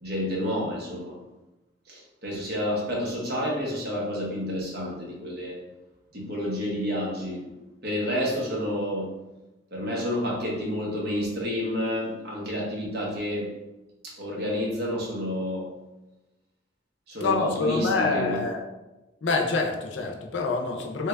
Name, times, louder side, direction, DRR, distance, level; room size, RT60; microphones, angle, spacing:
voice 1, 0.0-1.2 1.9-5.6 6.1-7.5 7.8-9.1 9.7-13.5 14.0-15.7 17.1-18.4, equal, 55° right, -3 dB, 0.9 m, -29 dB
voice 2, 17.2-18.6 19.2-21.1, left 3 dB, 75° left, 1 dB, 0.5 m, -26 dB
3.2 x 2.3 x 3.2 m, 1.0 s
head